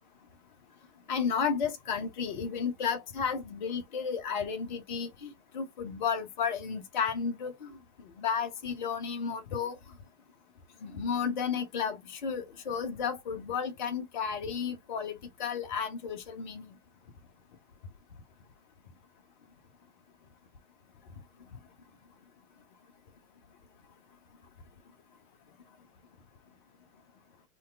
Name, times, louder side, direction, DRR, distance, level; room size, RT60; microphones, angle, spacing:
voice 1, 1.1-9.8 10.8-16.8, left 6 dB, 35° left, 0.4 m, -33 dB
2.7 x 2.2 x 2.2 m
figure-of-eight pair, 110°, 45 cm